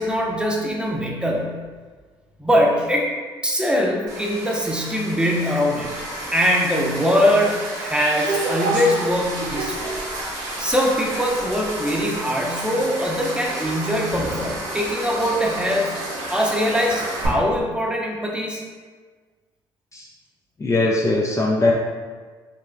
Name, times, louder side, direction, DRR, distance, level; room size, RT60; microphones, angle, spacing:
voice 1, 0.0-1.5 2.4-3.1 3.4-5.9 6.3-10.0 10.6-15.9 16.3-18.6, equal, 5° right, -2 dB, 0.7 m, -22 dB
sound 1, 4.1-17.3, right 2 dB, 75° right, 0.9 m, -30 dB
sound 2, 8.0-17.4, right 1 dB, 40° right, 1.0 m, -40 dB
voice 2, 20.6-21.7, left 2 dB, 25° left, -2 dB, 0.4 m, -20 dB
3.6 x 2.9 x 2.3 m, 1.4 s
hypercardioid pair, 50°, 12 cm